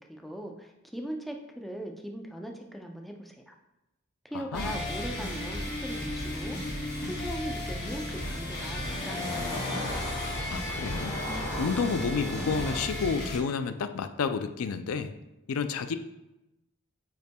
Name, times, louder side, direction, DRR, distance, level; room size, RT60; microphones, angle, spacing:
voice 1, 0.0-3.5 4.2-9.5, right 1 dB, ahead, 2 dB, 0.5 m, -40 dB
voice 2, 4.3-4.8 10.5-11.2 11.6-15.1 15.5-16.0, left 5 dB, 85° left, 9 dB, 0.4 m, -30 dB
sound 1, 4.5-13.4, left 1 dB, 50° left, 2.0 m, -34 dB
sound 2, 7.4-12.8, left 1 dB, 20° left, 2.0 m, -38 dB
8.9 x 5.5 x 2.2 m, 0.95 s
head